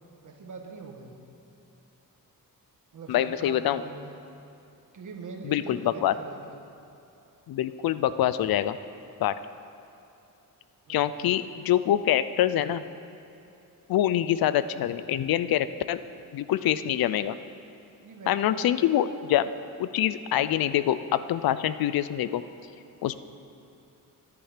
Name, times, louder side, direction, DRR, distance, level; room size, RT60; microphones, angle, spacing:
voice 1, 0.2-1.2 2.9-4.1 4.9-6.8 10.9-11.5 18.0-18.9 20.3-20.6, right 4 dB, 60° right, 2 dB, 1.3 m, -43 dB
voice 2, 3.1-3.8 5.4-6.1 7.5-8.8 9.2-9.3 10.9-12.8 13.9-16.0 16.3-17.3 18.3-19.5 19.8-22.4 23.0-23.2, left 11 dB, 80° left, 14 dB, 0.5 m, -25 dB
10.5 x 10.0 x 5.0 m, 2.8 s
wide cardioid pair, 135°, 36 cm